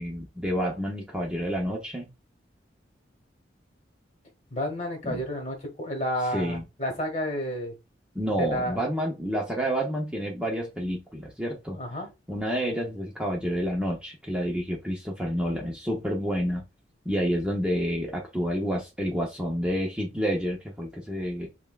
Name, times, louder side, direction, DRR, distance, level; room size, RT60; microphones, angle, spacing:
voice 1, 0.0-2.1 5.1-5.2 6.3-6.6 8.1-11.8 12.3-16.6 17.0-21.5, equal, 5° right, -2 dB, 0.6 m, -29 dB
voice 2, 4.5-7.7 8.4-8.8 11.7-12.1, equal, 40° left, 3 dB, 1.2 m, -31 dB
5.3 x 2.2 x 2.3 m, 0.25 s
head